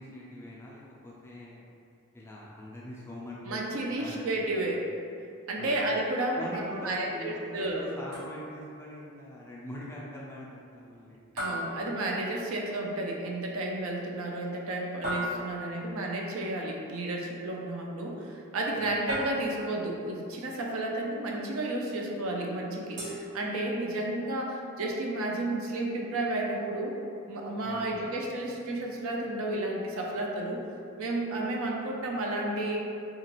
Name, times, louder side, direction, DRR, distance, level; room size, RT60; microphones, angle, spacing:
voice 1, 0.0-1.6 2.1-4.3 4.6-4.8 5.6-5.8 6.4-11.2 18.8-19.0 27.6-28.0, equal, 10° left, -6 dB, 0.3 m, -43 dB
voice 2, 3.4-4.8 5.5-7.8 11.4-27.0 27.3-30.6 31.0-32.8, right 1 dB, 65° right, -1 dB, 0.4 m, -32 dB
sound 1, 8.1-8.7 11.4-12.6 15.0-15.9 19.1-19.9 23.0-24.0, equal, 85° right, 1.1 m, -37 dB
2.9 x 2.3 x 2.9 m, 2.5 s
head